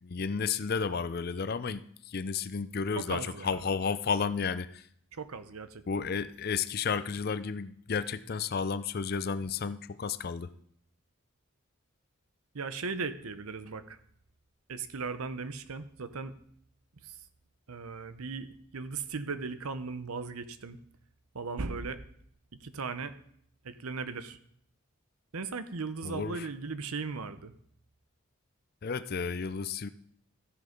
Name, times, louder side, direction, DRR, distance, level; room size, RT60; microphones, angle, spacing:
voice 1, 0.0-4.9 5.9-10.5 26.0-26.5 28.8-29.9, left 5 dB, 45° left, 14 dB, 0.4 m, -32 dB
voice 2, 3.0-3.6 5.1-6.1 12.5-14.0 14.7-16.3 17.0-17.2 17.7-20.8 21.3-22.0 22.6-23.1 23.6-24.4 25.3-27.5, right 4 dB, 80° right, 12 dB, 0.8 m, -37 dB
14.0 x 6.5 x 5.2 m, 0.67 s
head